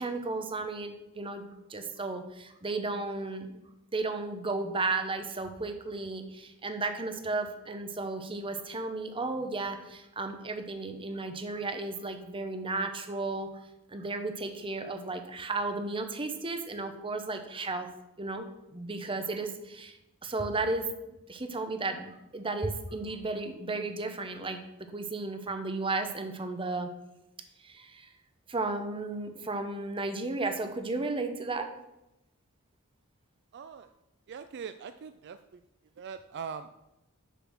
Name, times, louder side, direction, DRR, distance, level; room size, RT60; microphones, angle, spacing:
voice 1, 0.0-3.5 3.9-13.5 13.9-17.9 18.2-18.5 18.7-20.0 20.2-24.6 24.9-26.9 27.6-28.1 28.5-31.7, right 3 dB, 25° right, 7 dB, 0.8 m, -34 dB
voice 2, 33.5-33.9 34.3-35.6 36.0-36.7, right 6 dB, 55° right, 10 dB, 0.4 m, -42 dB
6.7 x 6.0 x 6.2 m, 0.91 s
head